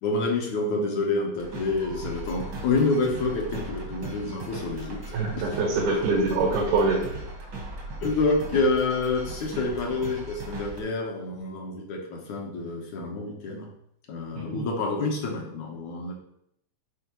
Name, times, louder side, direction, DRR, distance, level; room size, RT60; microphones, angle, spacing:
voice 1, 0.0-5.4 8.0-13.7 14.1-16.1, left 3 dB, 65° left, 0 dB, 2.2 m, -28 dB
sound 1, 1.4-10.8, right 2 dB, 55° right, 1.2 m, -38 dB
voice 2, 5.1-7.1 14.5-14.7, right 3 dB, 90° right, -3 dB, 3.2 m, -24 dB
10.0 x 4.4 x 3.0 m, 0.74 s
omnidirectional pair, 4.2 m